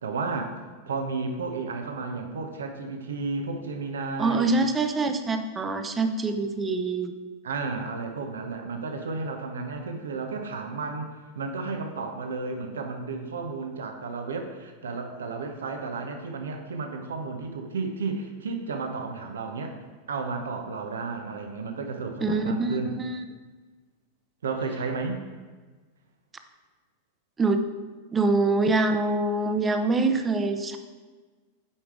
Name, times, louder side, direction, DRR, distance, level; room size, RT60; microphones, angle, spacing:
voice 1, 0.0-0.5 0.9-4.5 7.4-19.8 20.1-23.0 24.4-25.2, right 4 dB, 70° right, 5 dB, 1.0 m, -32 dB
voice 2, 4.2-7.1 22.2-23.2 27.4-27.6 28.1-30.8, right 3 dB, 20° right, 7 dB, 0.8 m, -25 dB
8.6 x 5.0 x 4.8 m, 1.4 s
figure-of-eight pair, 90°, 0 cm